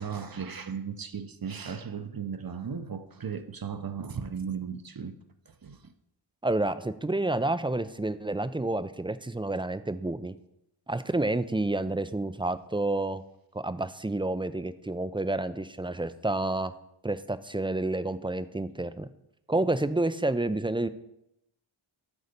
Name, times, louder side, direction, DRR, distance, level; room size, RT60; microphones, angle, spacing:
voice 1, 0.0-5.1 5.5-5.8, right 6 dB, 45° right, 0.7 m, -36 dB
voice 2, 6.4-10.3 10.9-13.2 13.5-16.7 17.0-19.1 19.5-20.9, right 2 dB, 10° right, 0.3 m, -29 dB
8.1 x 4.2 x 5.1 m
wide cardioid pair, 45°, 49 cm